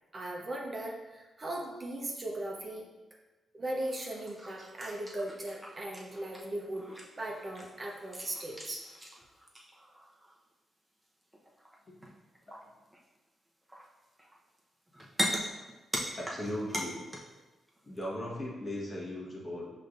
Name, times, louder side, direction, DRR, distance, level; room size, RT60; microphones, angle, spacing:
voice 1, 0.1-2.9 3.5-6.8 7.2-8.8, right 1 dB, 40° right, -1 dB, 0.8 m, -38 dB
sound 1, 3.8-10.4 11.3-11.8 12.0-13.2 13.7-14.6 14.9-17.4 17.7-18.0, equal, 10° right, 0.9 m, -40 dB
voice 2, 12.5-12.8 16.2-17.0 17.8-19.7, left 1 dB, 40° left, -4 dB, 1.4 m, -38 dB
5.1 x 3.3 x 2.6 m, 1.1 s
supercardioid pair, 50°, 0 cm